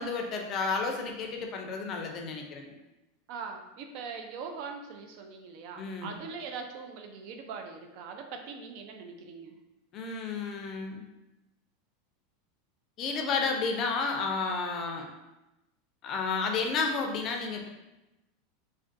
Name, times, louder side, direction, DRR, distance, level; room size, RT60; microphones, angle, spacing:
voice 1, 0.0-2.7 5.8-6.2 9.9-11.0 13.0-15.1 16.0-17.7, left 4 dB, 40° left, 2 dB, 0.4 m, -31 dB
voice 2, 3.3-9.6, right 5 dB, 60° right, 4 dB, 0.3 m, -41 dB
2.3 x 2.2 x 2.5 m, 0.98 s
supercardioid pair, 125°, 0 cm